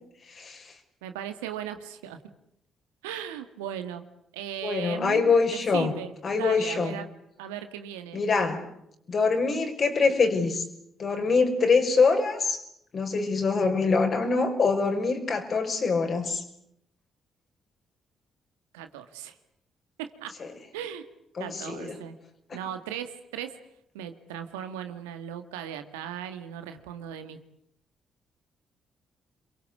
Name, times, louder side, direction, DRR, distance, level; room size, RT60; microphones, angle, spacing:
voice 1, 0.3-0.7 4.6-5.9 6.2-6.9 8.1-8.6 9.1-10.6 11.0-12.6 12.9-16.4 20.4-20.5 21.4-22.0, left 4 dB, 50° left, 5 dB, 6.0 m, -24 dB
voice 2, 1.0-2.2 3.0-4.0 4.3-5.3 5.7-7.1 7.4-8.2 18.7-19.4 20.0-20.4 20.7-21.1 21.4-22.2 22.5-23.6 23.9-27.4, right 10 dB, 85° right, 8 dB, 1.8 m, -37 dB
27.5 x 23.0 x 8.6 m, 0.76 s
hypercardioid pair, 45°, 0 cm